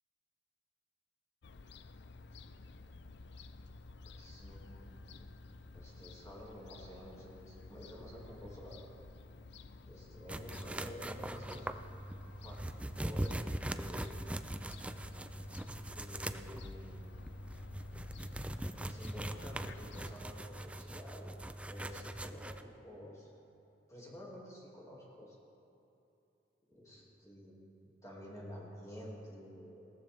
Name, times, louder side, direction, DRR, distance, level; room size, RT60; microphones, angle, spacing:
Fowl / Gull seagull, 1.4-20.2, left 3 dB, 65° left, 0.5 m, -52 dB
voice 1, 4.1-5.1 5.7-8.9 9.9-11.7 12.4-12.6 13.0-13.4 13.7-14.2 15.9-17.1 18.8-21.3 21.7-23.3 23.9-25.4 26.7-27.6 27.8-29.9, equal, 15° left, -5 dB, 2.4 m, -50 dB
sound 1, 10.3-22.6, right 1 dB, 5° right, 0.3 m, -41 dB
18.5 x 13.5 x 3.5 m, 2.8 s
head